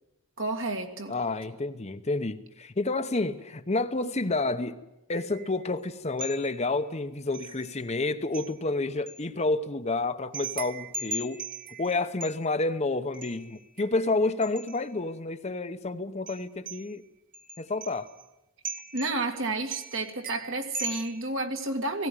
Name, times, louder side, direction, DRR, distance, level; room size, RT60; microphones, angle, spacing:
voice 1, 0.4-1.1 18.9-22.1, right 2 dB, 65° right, 2.2 m, -31 dB
voice 2, 1.1-4.8 5.1-11.4 11.8-17.0 17.6-18.1, left 2 dB, 30° left, 0.8 m, -29 dB
sound 1, 5.1-5.7 6.2-6.9 7.3-8.0 8.3-9.2 10.3-12.7 13.1-14.9 16.3-16.9 17.3-18.2 18.6-19.4 19.7-21.2, right 3 dB, 40° right, 1.3 m, -40 dB
18.0 x 17.0 x 9.2 m
head